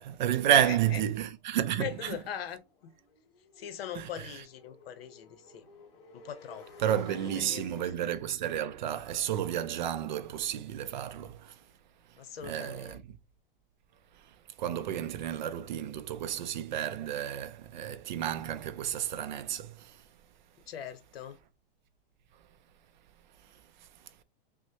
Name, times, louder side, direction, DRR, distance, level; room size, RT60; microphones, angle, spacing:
voice 1, 0.0-2.2 3.9-4.4 6.8-11.6 12.1-13.0 14.1-20.0 23.5-23.9, right 10 dB, 50° right, 0.4 m, -31 dB
voice 2, 0.7-1.0 1.8-2.9 3.6-5.7 6.1-6.7 7.1-7.9 12.2-13.0 20.7-21.4, left 9 dB, 75° left, 0.8 m, -41 dB
Motorcycle, 1.4-11.3, left 2 dB, 20° left, 2.1 m, -54 dB
6.1 x 2.1 x 2.8 m
supercardioid pair, 170°, 30 cm